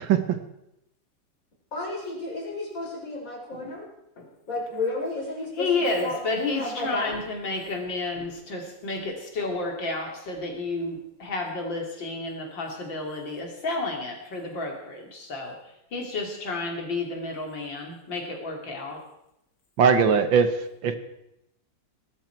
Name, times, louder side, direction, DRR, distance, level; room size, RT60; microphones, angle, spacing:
voice 1, 1.7-3.9 4.5-6.2 6.5-7.1, left 2 dB, 45° left, -1 dB, 4.7 m, -32 dB
voice 2, 5.6-15.6 15.9-19.0, left 3 dB, 75° left, 1 dB, 3.3 m, -31 dB
voice 3, 19.8-20.5 20.8-21.0, right 6 dB, 75° right, 9 dB, 1.9 m, -19 dB
19.0 x 12.5 x 4.6 m, 0.84 s
omnidirectional pair, 2.1 m